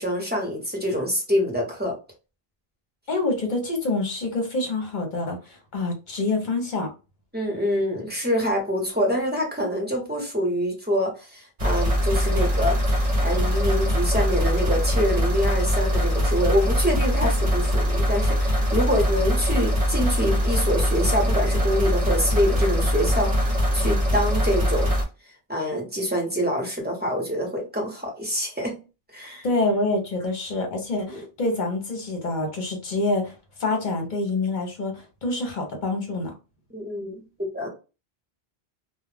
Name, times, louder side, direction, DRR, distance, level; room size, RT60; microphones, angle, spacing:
voice 1, 0.0-2.0 7.3-12.8 13.2-24.9 25.5-28.8 29.1-29.4 31.1-31.2 36.7-37.7, equal, 10° right, 0.8 m, -26 dB
voice 2, 3.1-6.9 29.4-36.3, left 2 dB, 50° left, 0.8 m, -26 dB
sound 1, 11.6-25.0, equal, 40° right, 0.8 m, -22 dB
2.3 x 2.1 x 3.2 m
omnidirectional pair, 1.0 m